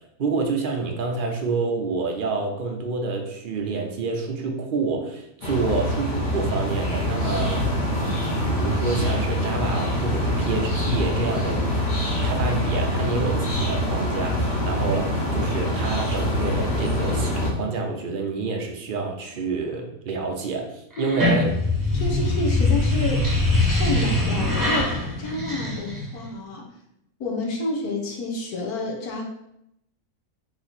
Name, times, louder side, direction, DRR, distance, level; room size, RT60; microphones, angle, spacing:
voice 1, 0.2-7.7 7.9-11.7 12.2-21.5, right 4 dB, 50° right, 2 dB, 0.6 m, -28 dB
sound 1, 5.4-17.5, left 1 dB, 65° left, 1.8 m, -25 dB
sound 2, 21.0-26.3, left 2 dB, 15° right, 1.0 m, -23 dB
voice 2, 21.9-23.3 23.7-26.7 27.2-29.2, left 2 dB, 85° left, -1 dB, 1.5 m, -29 dB
4.0 x 3.0 x 4.1 m, 0.79 s
omnidirectional pair, 1.6 m